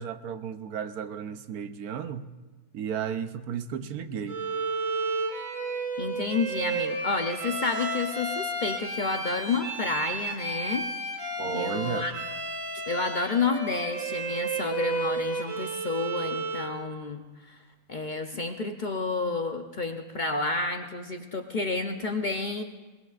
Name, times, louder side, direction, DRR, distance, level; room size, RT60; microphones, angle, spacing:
voice 1, 0.0-2.3 2.7-4.4 11.4-12.1, right 8 dB, 90° right, 10 dB, 1.2 m, -33 dB
Bowed string instrument, 4.3-16.8, right 2 dB, 65° right, 2.1 m, -32 dB
voice 2, 6.0-10.9 11.5-12.1 12.9-17.6 17.9-22.6, left 3 dB, 45° left, 5 dB, 0.6 m, -30 dB
22.0 x 19.5 x 2.5 m, 1.3 s
omnidirectional pair, 1.5 m